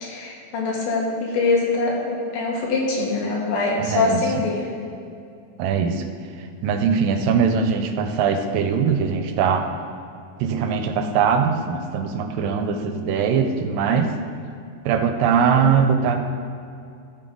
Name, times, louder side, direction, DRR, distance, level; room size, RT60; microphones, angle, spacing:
voice 1, 0.0-4.7 15.2-15.8, left 3 dB, 70° left, -2 dB, 3.2 m, -24 dB
voice 2, 3.8-4.2 5.6-6.0 6.6-9.6 10.4-14.1 14.9-16.2, right 6 dB, 80° right, 6 dB, 2.3 m, -21 dB
14.5 x 6.0 x 3.8 m, 2.5 s
omnidirectional pair, 4.1 m